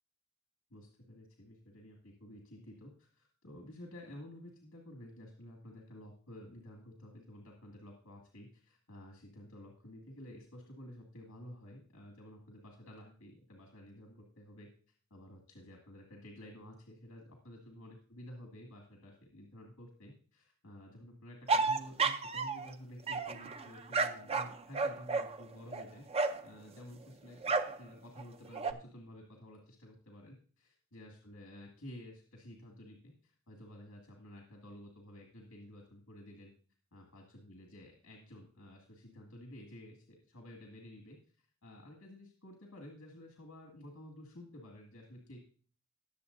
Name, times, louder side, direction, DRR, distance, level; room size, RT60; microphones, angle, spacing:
voice 1, 0.7-14.7 15.1-26.0 26.4-27.4 27.8-36.5 36.9-45.4, left 1 dB, 80° left, 1 dB, 2.2 m, -52 dB
sound 1, 21.5-22.7 23.1-26.5 27.4-27.8 28.2-28.7, right 4 dB, 30° right, 0.6 m, -32 dB
20.0 x 7.2 x 2.7 m, 0.42 s
head